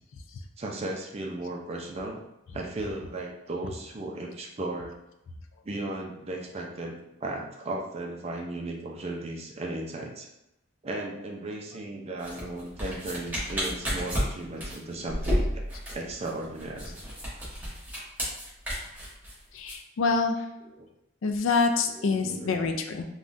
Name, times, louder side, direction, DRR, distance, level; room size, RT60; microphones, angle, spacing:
voice 1, 0.6-2.2 2.5-4.9 5.6-6.9 7.2-10.3 10.8-15.6 15.9-16.9 20.8-20.9 21.9-22.5, right 2 dB, 30° right, 0 dB, 0.4 m, -35 dB
sound 1, 12.2-19.8, equal, 10° right, 0.9 m, -31 dB
voice 2, 19.5-20.4 21.2-23.1, left 4 dB, 65° left, 5 dB, 0.3 m, -26 dB
3.5 x 2.2 x 2.5 m, 0.88 s
head